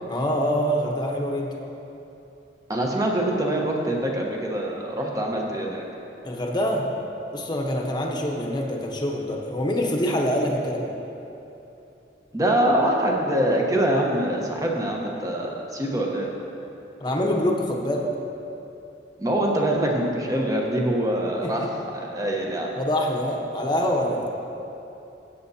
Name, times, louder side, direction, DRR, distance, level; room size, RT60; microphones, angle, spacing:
voice 1, 0.1-1.5 6.2-7.0 7.3-10.9 17.0-18.1 21.4-21.7 22.8-24.2, equal, 25° left, -1 dB, 1.0 m, -25 dB
voice 2, 2.7-5.8 12.3-16.3 19.2-21.7 21.9-22.7, right 1 dB, 20° right, -1 dB, 1.1 m, -24 dB
16.0 x 8.2 x 2.8 m, 2.9 s
head